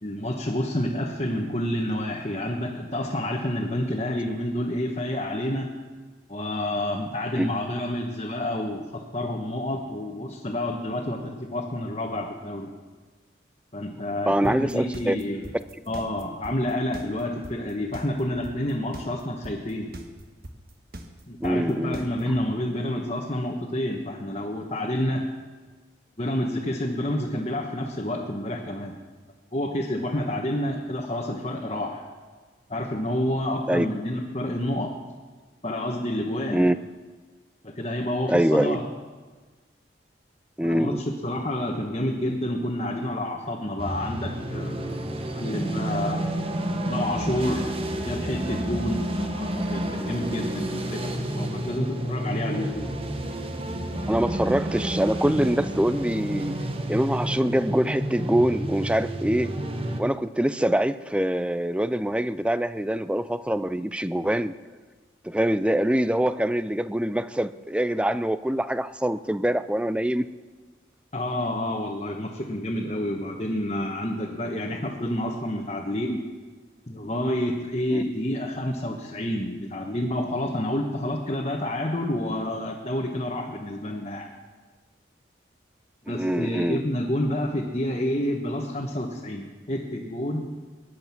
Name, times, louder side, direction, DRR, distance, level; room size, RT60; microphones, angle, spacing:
voice 1, 0.0-5.7 6.3-12.7 13.7-15.5 15.9-19.9 21.3-25.3 26.2-28.9 29.5-32.1 32.7-34.9 35.6-36.7 37.6-38.9 40.6-46.2 46.8-47.7 48.0-53.0 71.1-76.2 76.9-84.3 86.1-90.5, left 1 dB, 35° left, -1 dB, 1.4 m, -29 dB
voice 2, 14.3-15.2 21.4-22.0 33.7-33.9 36.5-36.8 38.3-38.8 40.6-41.0 54.1-56.6 56.9-59.5 60.0-64.5 65.2-70.3 77.9-78.0 86.1-86.8, right 1 dB, 5° right, 14 dB, 0.4 m, -24 dB
sound 1, 14.4-22.4, right 1 dB, 50° right, 1.5 m, -40 dB
sound 2, 43.8-60.0, right 1 dB, 30° right, 1.3 m, -30 dB
22.5 x 10.5 x 6.0 m, 1.4 s
head